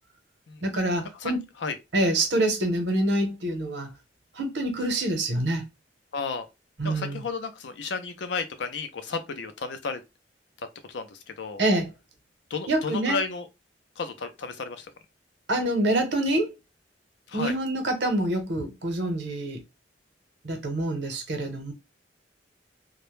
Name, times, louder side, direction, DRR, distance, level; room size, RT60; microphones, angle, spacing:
voice 1, 0.6-1.4 1.9-3.9 4.3-5.7 6.8-7.2 11.6-11.9 12.7-13.2 15.5-16.5 17.3-19.6 20.4-21.7, right 1 dB, 65° right, 0.8 m, -26 dB
voice 2, 6.1-6.5 6.8-10.0 10.6-11.6 12.5-13.5 14.0-14.9 17.3-17.5, left 4 dB, 70° left, 0.5 m, -33 dB
2.1 x 2.0 x 3.0 m
head